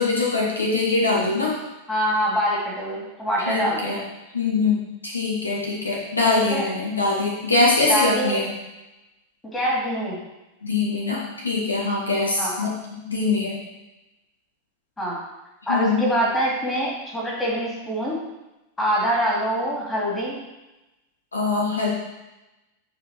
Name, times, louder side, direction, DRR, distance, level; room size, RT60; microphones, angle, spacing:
voice 1, 0.0-1.6 3.5-4.0 4.3-8.5 10.6-13.6 15.7-16.0 21.3-21.9, left 3 dB, 75° left, -3 dB, 1.7 m, -23 dB
voice 2, 1.9-3.9 6.5-6.6 7.9-8.4 9.4-10.2 12.4-12.5 15.0-15.2 15.7-18.2 18.8-20.4, equal, 10° left, -4 dB, 2.7 m, -24 dB
9.8 x 4.4 x 4.4 m, 1.0 s
figure-of-eight pair, 90°, 0 cm